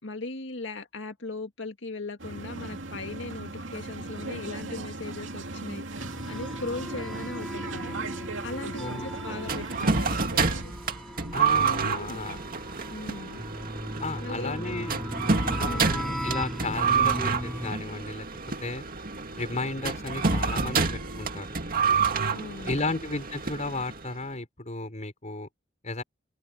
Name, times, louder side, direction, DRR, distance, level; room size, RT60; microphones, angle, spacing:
voice 1, 0.0-5.9 6.3-8.0 8.4-10.8 11.6-12.2 12.9-13.4 14.2-14.9 15.6-16.0 22.3-22.9, left 2 dB, 70° left, 2.2 m, -38 dB
sound 1, 2.2-10.6, right 2 dB, 90° right, 2.6 m, -37 dB
sound 2, 6.0-17.7, equal, ahead, 6.9 m, -37 dB
voice 2, 8.8-9.4 11.3-12.4 14.0-14.9 15.6-18.3 18.6-18.9 19.3-21.5 22.6-25.5 25.8-26.0, left 2 dB, 40° left, 5.6 m, -34 dB
sound 3, 9.5-24.2, right 5 dB, 50° right, 2.2 m, -28 dB
head